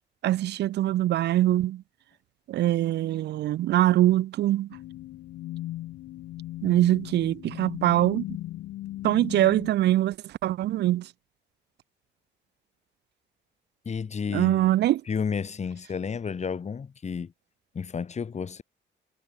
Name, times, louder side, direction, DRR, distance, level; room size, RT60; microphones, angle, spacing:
voice 1, 0.2-1.8 2.5-4.7 6.6-8.2 9.0-10.2 10.4-11.1 14.3-15.0, right 14 dB, 60° right, 0.4 m, -23 dB
sound 1, 4.7-9.7, left 15 dB, 80° left, 0.8 m, -38 dB
voice 2, 13.8-14.7 15.1-17.3 17.7-18.6, left 6 dB, 35° left, 1.1 m, -31 dB
cardioid pair, 90°, 20 cm